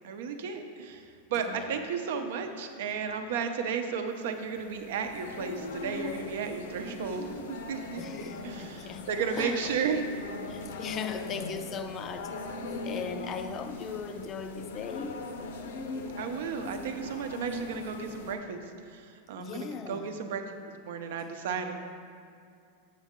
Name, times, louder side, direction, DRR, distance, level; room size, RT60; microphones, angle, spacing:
voice 1, 0.0-1.0 1.3-8.0 8.4-10.0 16.2-18.6 18.9-19.0 19.3-20.4 20.8-21.7, right 6 dB, 65° right, 6 dB, 0.7 m, -33 dB
voice 2, 1.3-1.8 8.0-9.1 9.3-9.7 10.5-12.4 12.8-15.3 19.4-20.2, left 6 dB, 25° left, 8 dB, 0.4 m, -38 dB
sound 1, 4.3-18.4, left 2 dB, 90° left, 0.8 m, -40 dB
7.4 x 7.3 x 3.7 m, 2.3 s
supercardioid pair, 165°, 0 cm